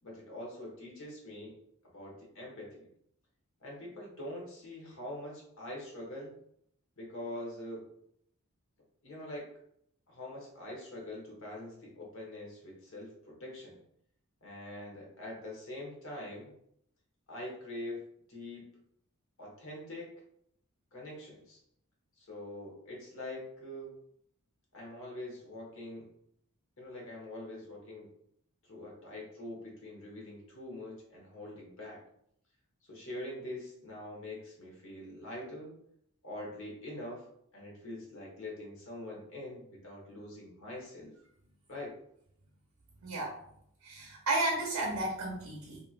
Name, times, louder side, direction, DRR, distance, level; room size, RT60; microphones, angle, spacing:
voice 1, 0.0-1.6 1.9-2.9 3.6-6.3 7.0-7.9 9.0-9.5 10.1-13.8 14.4-16.5 17.3-18.0 18.3-18.8 19.4-20.1 20.9-21.6 22.2-23.9 24.7-26.1 26.8-28.1 28.6-32.0 32.9-35.7 36.2-37.3 37.5-41.1 41.7-42.0, left 1 dB, 65° left, -2 dB, 1.1 m, -44 dB
voice 2, 43.0-43.4 43.8-45.8, right 2 dB, 80° right, -1 dB, 0.6 m, -33 dB
3.0 x 2.5 x 2.5 m, 0.71 s
head